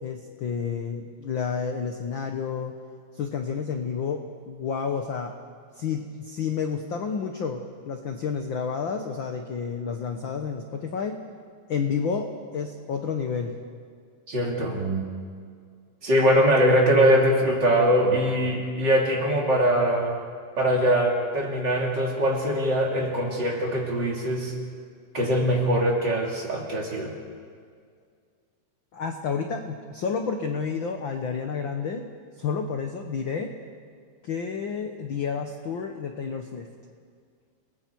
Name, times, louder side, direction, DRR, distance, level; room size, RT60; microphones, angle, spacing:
voice 1, 0.0-2.7 3.1-5.3 5.8-11.2 11.7-12.3 12.5-13.5 28.9-32.1 32.4-33.5 34.2-36.7, left 6 dB, 65° left, 4 dB, 1.2 m, -30 dB
voice 2, 14.3-15.1 16.0-20.2 20.6-24.5 25.1-27.1, equal, 35° right, -1 dB, 3.3 m, -22 dB
30.0 x 20.5 x 4.7 m, 2.1 s
omnidirectional pair, 3.7 m